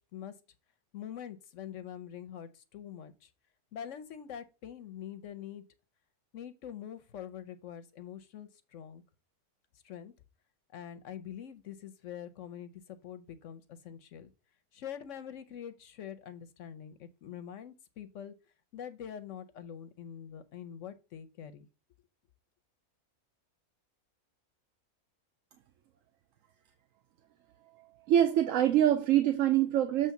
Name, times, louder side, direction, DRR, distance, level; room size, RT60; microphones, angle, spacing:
voice 1, 0.9-3.3 3.7-5.6 6.3-9.0 9.8-10.1 10.7-14.3 14.7-18.3 18.7-21.7, left 9 dB, 65° left, 0.9 m, -44 dB
voice 2, 28.1-30.1, right 11 dB, 70° right, 1.0 m, -24 dB
7.5 x 3.2 x 5.7 m
omnidirectional pair, 1.6 m